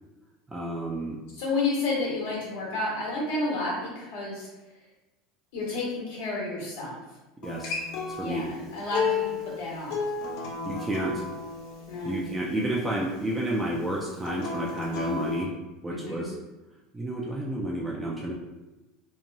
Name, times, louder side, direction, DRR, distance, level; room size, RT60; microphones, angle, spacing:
voice 1, 0.5-1.2 7.4-7.8 8.1-8.5 10.7-11.2 12.0-15.5 15.8-16.3 16.9-18.3, right 1 dB, 10° right, -4 dB, 0.3 m, -30 dB
voice 2, 1.3-4.5 5.5-7.0 8.2-10.0 11.9-12.2 15.9-16.3, left 2 dB, 85° left, -4 dB, 1.3 m, -31 dB
Acoustic guitar, 7.4-12.6 14.2-15.4, left 5 dB, 60° left, 0.6 m, -33 dB
2.9 x 2.2 x 2.6 m, 1.1 s
supercardioid pair, 135°, 0 cm